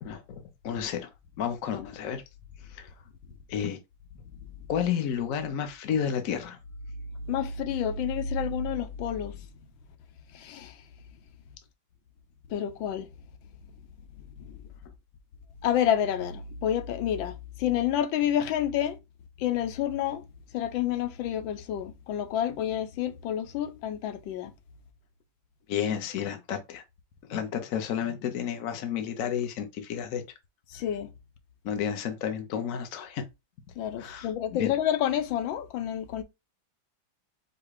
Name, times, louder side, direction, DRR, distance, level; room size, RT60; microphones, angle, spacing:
voice 1, 0.0-1.1 1.4-2.2 2.6-2.9 3.5-3.8 4.7-6.6 25.7-26.8 27.3-30.2 31.6-33.2 34.0-34.7, left 8 dB, 60° left, 0.9 m, -31 dB
voice 2, 7.3-9.5 10.3-10.8 12.5-13.1 14.4-14.6 15.6-19.0 19.4-20.3 20.5-24.5 30.7-31.1 33.8-36.2, left 10 dB, 90° left, 1.4 m, -29 dB
4.8 x 2.2 x 4.7 m
omnidirectional pair, 2.1 m